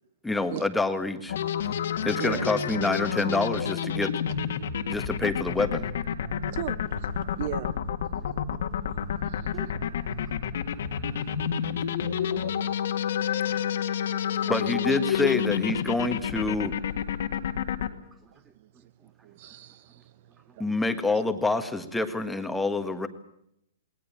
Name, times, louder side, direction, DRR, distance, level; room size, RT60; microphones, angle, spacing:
voice 1, 0.2-1.3 2.0-4.1 4.9-5.9 14.4-16.7 20.6-23.1, left 3 dB, 5° left, 1.6 m, -27 dB
sound 1, 1.3-17.9, left 8 dB, 70° left, 1.9 m, -29 dB
voice 2, 2.2-2.6 6.5-7.9 8.9-9.7 11.2-11.4 13.4-13.6 18.3-20.7 21.1-21.3, right 12 dB, 50° right, 0.9 m, -39 dB
voice 3, 10.2-11.7 12.3-12.4 13.6-13.7 14.1-14.2 18.2-18.5 20.5-20.6, right 5 dB, 15° right, 1.0 m, -60 dB
20.0 x 19.5 x 8.7 m
hypercardioid pair, 140°, 0 cm